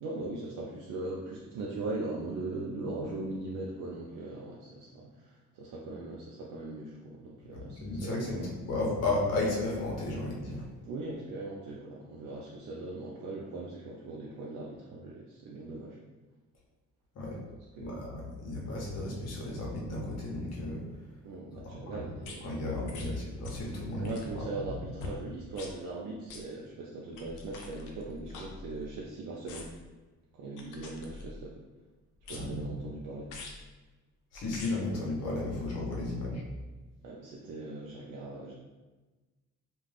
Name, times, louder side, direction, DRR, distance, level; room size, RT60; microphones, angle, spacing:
voice 1, 0.0-8.5 10.8-16.0 17.8-17.9 21.2-22.5 23.0-23.1 24.0-29.7 30.3-31.6 32.3-33.3 37.0-38.5, right 2 dB, 80° right, -3 dB, 0.5 m, -40 dB
voice 2, 7.5-10.7 17.1-17.4 17.8-20.8 21.6-22.0 22.4-24.1 24.5-24.6 32.3-32.7 34.3-36.4, left 2 dB, 60° left, -3 dB, 0.9 m, -34 dB
sound 1, 22.2-22.4 22.9-23.1 23.4-23.7 24.0-24.4 25.0-25.2 25.5-25.7 26.3-26.4 27.1-29.0 29.5-29.9 30.6-31.5 32.2-32.7 33.3-33.6 34.3-34.7 35.5-35.6, left 3 dB, 90° left, 0.6 m, -45 dB
2.5 x 2.3 x 3.3 m, 1.2 s
cardioid pair, 90°, 30 cm